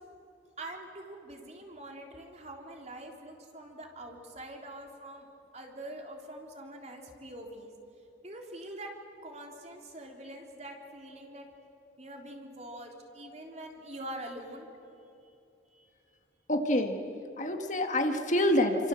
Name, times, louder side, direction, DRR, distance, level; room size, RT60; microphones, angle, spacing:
voice 1, 0.6-5.3 5.5-7.7 8.2-8.9 9.2-11.5 12.0-14.7 15.7-15.9, right 1 dB, 35° right, 2 dB, 3.4 m, -44 dB
voice 2, 16.5-17.1 17.4-18.9, left 1 dB, 40° left, 5 dB, 1.8 m, -27 dB
29.0 x 25.5 x 7.7 m, 2.8 s
head